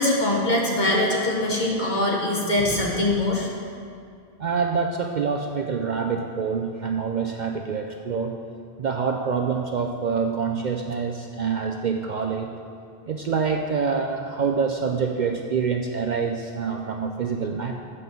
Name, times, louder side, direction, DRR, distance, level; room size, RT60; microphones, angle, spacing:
voice 1, 0.0-3.5, left 1 dB, 45° left, -3 dB, 1.5 m, -22 dB
voice 2, 4.4-8.3 8.8-12.5 13.1-17.7, right 5 dB, 55° right, 3 dB, 0.6 m, -26 dB
8.4 x 5.3 x 6.9 m, 2.3 s
omnidirectional pair, 1.1 m